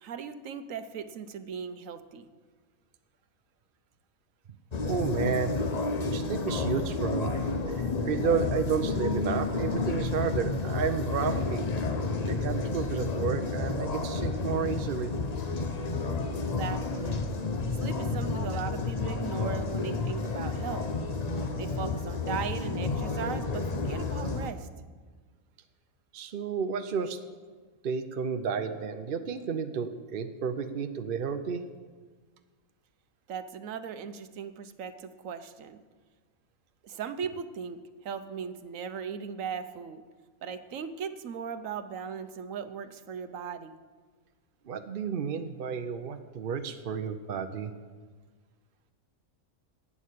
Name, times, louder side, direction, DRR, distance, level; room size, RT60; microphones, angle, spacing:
voice 1, 0.0-2.3 16.4-17.2 17.8-20.9 21.6-24.7 33.3-35.8 36.8-40.0 40.4-43.8, right 6 dB, 65° right, 11 dB, 1.1 m, -38 dB
sound 1, 4.7-24.5, left 3 dB, 35° left, 0.7 m, -31 dB
voice 2, 4.8-5.6 6.1-11.7 12.3-15.1 18.5-18.6 26.1-27.2 27.8-31.7 44.7-47.7, right 6 dB, 50° right, 8 dB, 0.7 m, -32 dB
12.0 x 8.5 x 8.4 m, 1.4 s
omnidirectional pair, 1.5 m